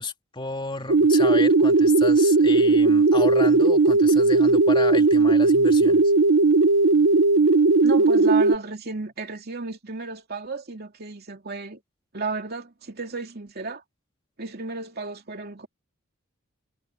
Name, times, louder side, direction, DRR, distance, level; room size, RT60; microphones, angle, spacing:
voice 1, 0.0-6.1, left 3 dB, 25° left, 3.1 m, -32 dB
sound 1, 0.9-8.6, right 3 dB, 70° right, 0.8 m, -17 dB
voice 2, 7.8-11.8 12.1-13.8 14.4-15.7, right 3 dB, 50° right, 2.7 m, -33 dB
head